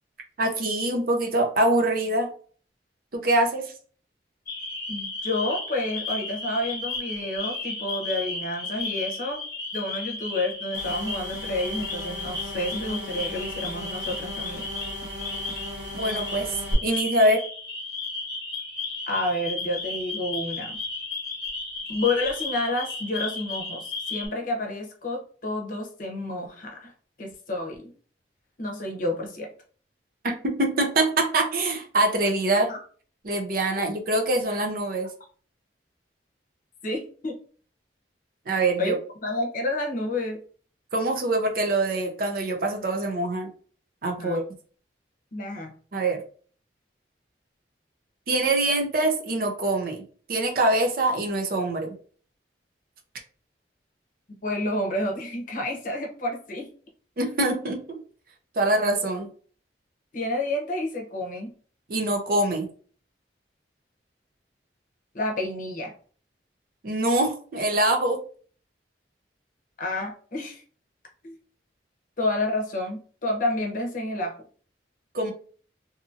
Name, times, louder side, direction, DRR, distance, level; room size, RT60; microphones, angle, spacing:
voice 1, 0.4-2.3 3.1-3.7 16.0-16.5 16.8-17.4 30.2-32.7 33.2-35.1 38.5-38.9 40.9-43.5 44.0-44.4 45.9-46.2 48.3-50.0 50.3-51.9 57.2-58.0 58.6-59.3 61.9-62.7 66.8-68.2 75.1-75.3, right 2 dB, 55° right, 3 dB, 0.6 m, -24 dB
sound 1, 4.5-24.3, left 3 dB, 20° left, 1.1 m, -34 dB
voice 2, 4.9-9.4 9.7-14.7 19.1-20.8 21.9-26.9 27.2-27.9 28.6-29.5 32.7-32.8 36.8-37.3 38.8-38.9 39.2-40.4 44.2-44.4 45.3-45.7 54.3-56.7 60.1-61.5 65.1-65.9 69.8-70.6 71.2-71.4 72.2-74.3, left 1 dB, 50° left, 1 dB, 0.7 m, -29 dB
sound 2, 10.7-16.7, left 1 dB, 70° right, 1.3 m, -38 dB
2.7 x 2.6 x 2.4 m, 0.43 s
head